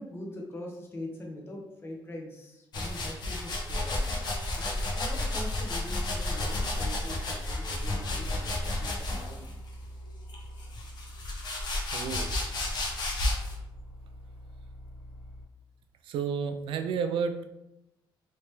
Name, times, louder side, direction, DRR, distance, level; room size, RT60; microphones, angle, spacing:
voice 1, 0.0-4.1 4.6-9.5 10.5-10.7, left 1 dB, 25° left, 0 dB, 0.8 m, -43 dB
sound 1, 2.7-9.5 10.3-13.6, left 2 dB, 55° left, 0.8 m, -32 dB
sound 2, 5.5-15.4, equal, 5° right, 1.2 m, -45 dB
voice 2, 11.9-12.3 16.0-17.4, right 6 dB, 85° right, 8 dB, 0.4 m, -31 dB
3.2 x 2.9 x 3.2 m, 0.89 s
cardioid pair, 125°, 9 cm